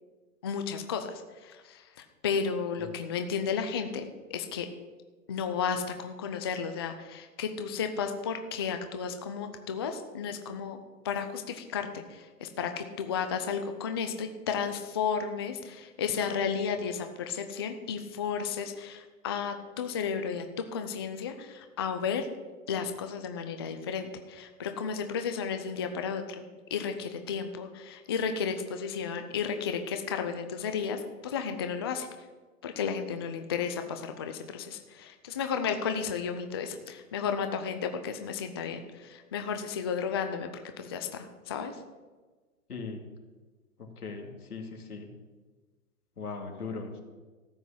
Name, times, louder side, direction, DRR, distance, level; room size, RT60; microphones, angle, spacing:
voice 1, 0.4-4.7 5.3-10.8 11.0-20.5 20.7-22.3 22.7-32.1 32.6-40.5 40.8-41.8, left 6 dB, 20° left, 7 dB, 0.4 m, -33 dB
voice 2, 42.7-43.0 43.8-45.1 46.2-47.0, left 4 dB, 85° left, 3 dB, 2.7 m, -39 dB
13.5 x 5.9 x 8.6 m, 1.3 s
hypercardioid pair, 135°, 44 cm